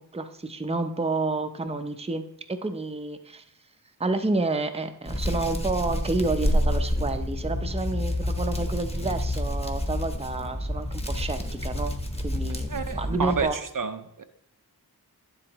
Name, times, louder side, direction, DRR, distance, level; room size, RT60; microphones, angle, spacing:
voice 1, 0.1-2.2 2.5-3.4 4.0-11.9 12.2-12.7 13.0-13.6, right 3 dB, 15° right, 7 dB, 0.6 m, -29 dB
Hands, 5.0-13.4, left 1 dB, 15° left, 1.1 m, -28 dB
voice 2, 12.7-14.2, right 5 dB, 55° right, 8 dB, 0.6 m, -30 dB
9.9 x 7.7 x 3.0 m, 0.77 s
wide cardioid pair, 50°, 38 cm